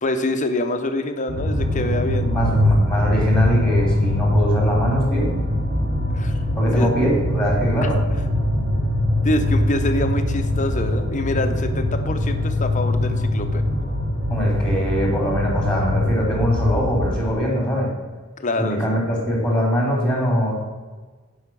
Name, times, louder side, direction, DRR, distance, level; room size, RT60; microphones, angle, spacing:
voice 1, 0.0-2.3 6.1-6.3 6.7-6.9 9.2-13.6 18.4-19.0, left 2 dB, 35° left, 7 dB, 0.8 m, -25 dB
sound 1, 1.3-17.2, left 1 dB, 60° right, 2.6 m, -22 dB
voice 2, 2.2-5.3 6.5-8.0 14.3-17.9 18.6-20.5, equal, 5° left, -2 dB, 3.2 m, -22 dB
9.5 x 5.7 x 6.2 m, 1.3 s
head